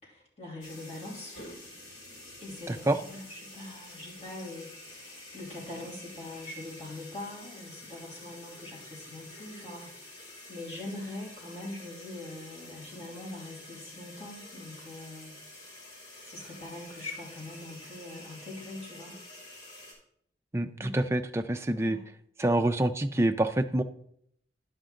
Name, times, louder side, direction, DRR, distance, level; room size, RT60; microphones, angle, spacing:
voice 1, 0.0-1.3 2.4-15.3 16.2-19.2 20.8-21.0 21.7-22.1, left 2 dB, 35° left, -5 dB, 3.0 m, -43 dB
sound 1, 0.6-19.9, left 2 dB, 80° left, 3.3 m, -48 dB
voice 2, 20.5-22.0 22.4-23.8, right 1 dB, 15° right, 8 dB, 0.4 m, -26 dB
10.5 x 5.8 x 3.8 m, 0.70 s
head